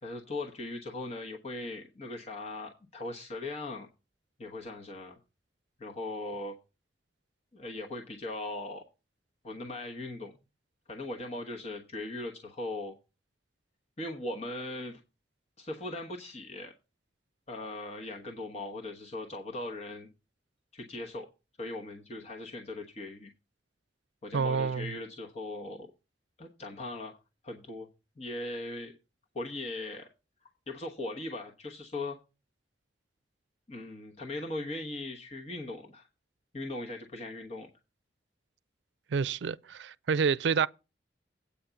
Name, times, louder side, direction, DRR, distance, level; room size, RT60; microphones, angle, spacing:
voice 1, 0.0-3.9 4.4-5.2 5.8-6.6 7.5-8.8 9.4-10.3 10.9-12.9 14.0-15.0 15.6-16.7 17.5-20.1 20.7-21.3 21.6-23.3 24.2-25.9 26.4-27.2 27.4-27.9 28.2-28.9 29.3-30.1 30.7-32.2 33.7-36.1 36.5-37.7, left 2 dB, 40° left, 1.1 m, -39 dB
voice 2, 24.3-24.9 39.1-40.7, right 6 dB, 90° right, 0.4 m, -28 dB
8.7 x 5.0 x 6.9 m
head